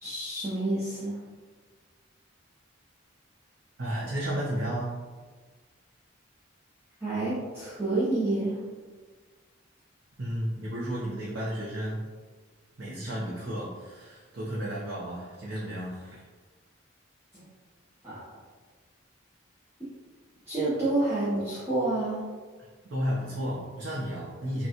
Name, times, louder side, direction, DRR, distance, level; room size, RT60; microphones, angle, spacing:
voice 1, 0.0-1.2 7.0-8.6 17.3-17.5 18.0-18.2 20.5-22.2, right 2 dB, 10° right, -12 dB, 0.7 m, -28 dB
voice 2, 3.8-4.9 10.2-12.0 12.8-16.2 22.9-24.7, equal, 65° right, -7 dB, 0.7 m, -33 dB
5.6 x 2.3 x 2.8 m, 1.4 s
head